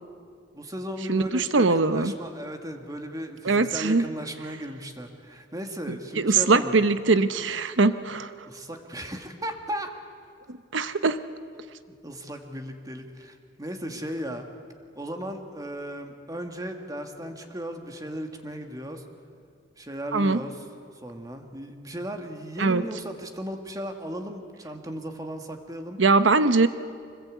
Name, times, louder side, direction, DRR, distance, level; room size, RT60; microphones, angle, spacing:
voice 1, 0.5-6.7 8.5-9.9 11.9-14.5 15.0-19.0 19.8-20.7 21.0-26.0, equal, 20° right, 5 dB, 1.7 m, -36 dB
voice 2, 1.1-2.1 3.4-4.0 6.2-8.3 10.5-11.2 20.1-20.4 22.6-22.8 26.0-26.7, right 3 dB, 75° right, 12 dB, 0.9 m, -21 dB
25.0 x 20.5 x 8.4 m, 2.2 s
head